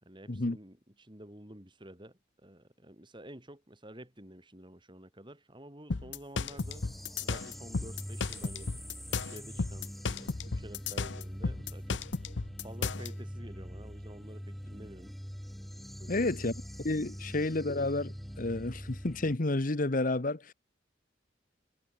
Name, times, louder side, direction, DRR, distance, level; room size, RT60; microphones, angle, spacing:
voice 1, 0.0-6.8 7.2-8.7 9.1-12.0 12.3-15.1 16.0-16.3 17.2-17.3, right 1 dB, 25° right, 3.7 m, -50 dB
sound 1, 5.9-13.1, left 4 dB, 65° left, 0.8 m, -34 dB
sound 2, 6.6-19.4, equal, ahead, 1.0 m, -44 dB
voice 2, 16.1-16.5 16.8-20.5, left 2 dB, 45° left, 1.1 m, -30 dB
head